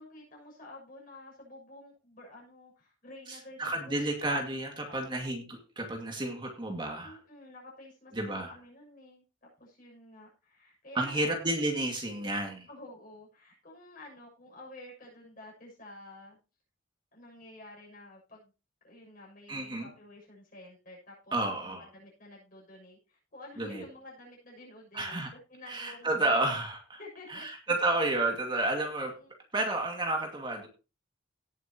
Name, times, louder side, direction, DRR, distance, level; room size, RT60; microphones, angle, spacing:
voice 1, 0.0-4.5 4.9-5.3 7.0-11.3 12.7-16.4 17.1-18.5 18.8-25.2 25.5-26.4 27.0-27.5 29.2-29.3, left 1 dB, 45° left, -3 dB, 7.0 m, -50 dB
voice 2, 3.3-7.2 8.1-8.5 10.9-12.7 19.5-19.9 21.3-21.9 23.6-23.8 24.9-25.3 25.6-27.0 27.3-29.1 29.5-30.7, right 2 dB, 25° right, 2 dB, 2.3 m, -31 dB
18.0 x 8.3 x 3.0 m, 0.32 s
head